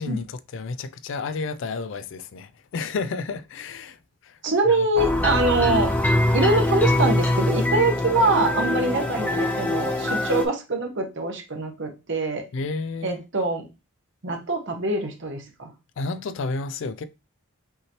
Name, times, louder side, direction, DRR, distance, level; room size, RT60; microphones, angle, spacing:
voice 1, 0.0-4.0 4.2-4.4 4.7-4.9 5.3-5.4 12.5-13.2 16.0-17.0, left 4 dB, 60° left, 0.4 m, -31 dB
voice 2, 4.4-5.9 6.3-12.4 13.0-13.7 14.2-15.7, right 2 dB, 55° right, 1.0 m, -24 dB
sound 1, 5.0-10.4, left 1 dB, 10° left, 0.6 m, -23 dB
5.6 x 3.0 x 2.9 m
head